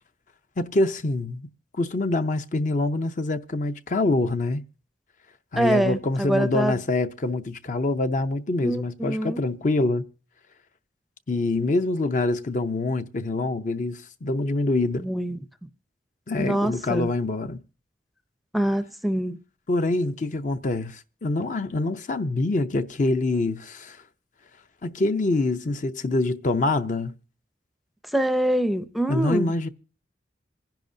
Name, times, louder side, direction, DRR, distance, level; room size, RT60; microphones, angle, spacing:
voice 1, 0.6-1.5 1.8-4.6 5.5-10.1 11.3-15.1 16.3-17.6 19.7-24.0 24.8-27.2 29.1-29.7, left 2 dB, 45° left, 0.6 m, -25 dB
voice 2, 5.6-6.8 8.6-9.4 15.0-15.4 16.4-17.1 18.5-19.4 28.1-29.5, right 1 dB, ahead, 0.5 m, -25 dB
26.0 x 10.5 x 2.6 m
head